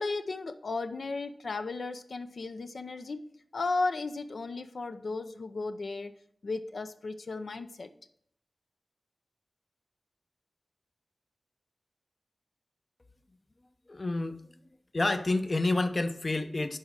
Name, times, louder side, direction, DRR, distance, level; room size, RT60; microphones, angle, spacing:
voice 1, 0.0-3.2 3.5-6.1 6.4-7.9, left 3 dB, 75° left, 8 dB, 0.6 m, -35 dB
voice 2, 13.9-14.4 14.9-16.8, left 2 dB, 40° left, 10 dB, 0.6 m, -29 dB
11.0 x 4.1 x 6.4 m, 0.67 s
wide cardioid pair, 80°, 0 cm